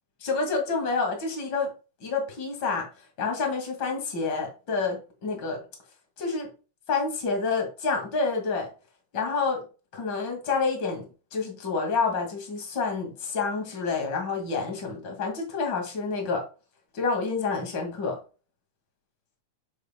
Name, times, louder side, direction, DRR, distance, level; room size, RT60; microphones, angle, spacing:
voice 1, 0.2-1.7 2.0-2.9 3.2-5.6 6.2-6.5 6.9-8.7 9.1-9.6 9.9-11.0 11.3-16.4 16.9-18.2, left 4 dB, 40° left, 2 dB, 2.7 m, -28 dB
9.7 x 6.3 x 2.3 m, 0.33 s
omnidirectional pair, 3.4 m